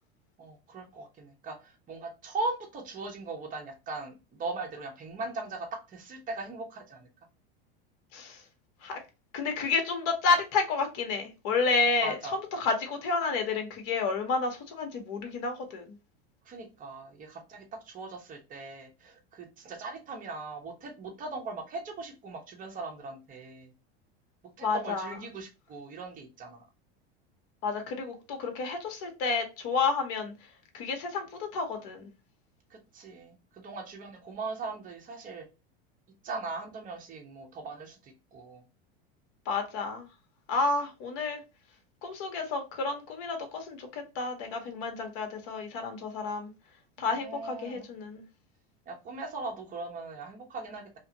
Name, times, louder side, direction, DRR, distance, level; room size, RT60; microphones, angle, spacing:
voice 1, 0.4-7.1 11.7-12.4 16.5-23.7 24.6-26.7 32.7-35.4 36.2-38.6 47.0-47.9 48.9-51.0, right 3 dB, 25° right, 0.8 m, -39 dB
voice 2, 8.1-8.4 8.8-9.0 9.3-15.9 24.6-25.2 27.6-30.3 30.7-32.1 39.5-40.1 40.5-41.4 42.0-46.5 47.0-48.2, left 4 dB, 60° left, 1.1 m, -30 dB
2.6 x 2.5 x 2.7 m
supercardioid pair, 120°, 31 cm